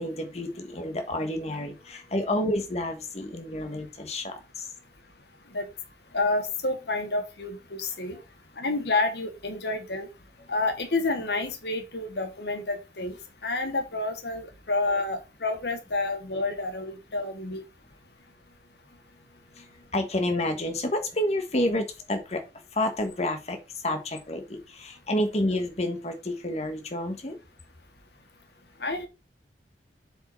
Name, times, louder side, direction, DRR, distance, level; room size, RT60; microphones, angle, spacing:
voice 1, 0.0-4.7 19.6-19.7 19.9-22.4 22.7-23.6 23.8-27.4, left 1 dB, 40° left, 5 dB, 1.4 m, -29 dB
voice 2, 6.1-8.2 8.6-10.1 10.5-13.1 13.4-17.6 28.8-29.1, left 2 dB, 65° left, 7 dB, 1.4 m, -29 dB
7.4 x 4.8 x 4.4 m, 0.27 s
head